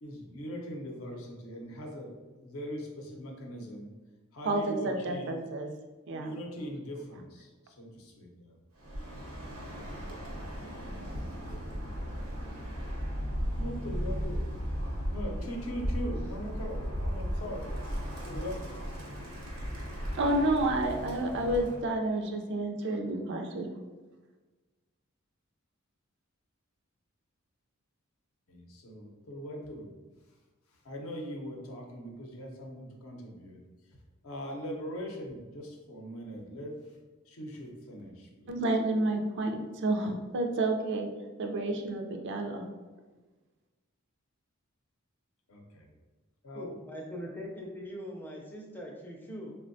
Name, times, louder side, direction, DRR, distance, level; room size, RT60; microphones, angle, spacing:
voice 1, 0.0-3.9 4.3-5.4 6.2-8.5 13.6-14.5 15.1-17.8 18.2-18.6 28.5-29.9 30.8-33.6 34.2-36.8 37.3-38.5 45.5-45.9 46.4-46.7, equal, 70° left, 1 dB, 0.6 m, -41 dB
voice 2, 4.4-5.7 6.1-6.4 20.1-23.7 38.5-41.1 41.4-42.6, right 2 dB, 55° right, 3 dB, 0.4 m, -30 dB
Bird, 8.8-21.9, equal, 80° right, 0.8 m, -36 dB
voice 3, 46.5-49.5, equal, 10° left, -2 dB, 0.4 m, -41 dB
3.3 x 2.1 x 2.6 m, 1.3 s
head